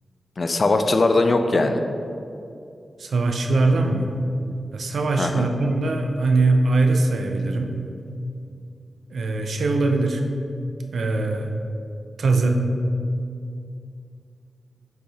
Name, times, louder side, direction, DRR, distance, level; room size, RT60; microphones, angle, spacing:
voice 1, 0.4-1.8 5.2-5.5, left 2 dB, 50° left, 7 dB, 0.3 m, -20 dB
voice 2, 3.0-4.1 4.7-7.8 9.1-10.2 10.9-11.5 12.2-12.6, right 3 dB, 80° right, 4 dB, 0.4 m, -21 dB
4.6 x 2.7 x 4.0 m, 2.5 s
cardioid pair, 60°, 0 cm